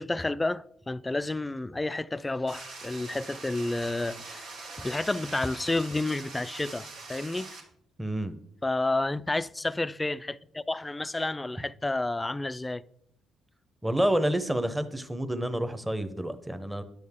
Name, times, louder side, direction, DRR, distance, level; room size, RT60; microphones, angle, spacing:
voice 1, 0.0-4.5 4.8-7.5 8.6-12.8, left 2 dB, 15° left, 0.3 m, -30 dB
sound 1, 2.5-7.6, right 3 dB, 90° right, 2.3 m, -43 dB
voice 2, 8.0-8.4 13.8-16.8, right 1 dB, 10° right, 0.8 m, -28 dB
10.5 x 6.4 x 3.6 m
cardioid pair, 90°, 0 cm